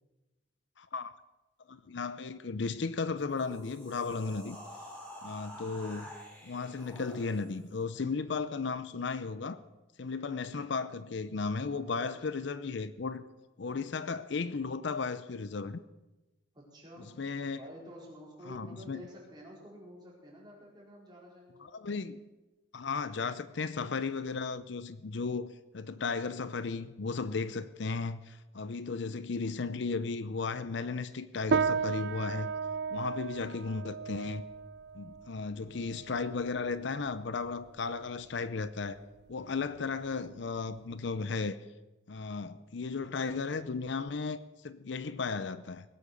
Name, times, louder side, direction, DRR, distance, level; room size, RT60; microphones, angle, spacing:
voice 1, 0.8-1.1 1.7-4.6 5.2-6.1 6.4-9.6 10.0-13.2 13.6-15.8 17.2-17.6 18.5-19.0 21.6-22.2 22.7-32.5 32.9-34.4 34.9-39.0 39.3-41.6 42.1-45.8, left 4 dB, 60° left, 0.6 m, -35 dB
sound 1, 3.2-7.8, equal, 5° left, 3.4 m, -48 dB
voice 2, 11.7-12.4 16.5-17.1 17.6-21.9, equal, 20° right, 4.6 m, -50 dB
sound 2, 31.5-41.2, right 5 dB, 55° right, 0.4 m, -36 dB
19.5 x 8.7 x 6.7 m
head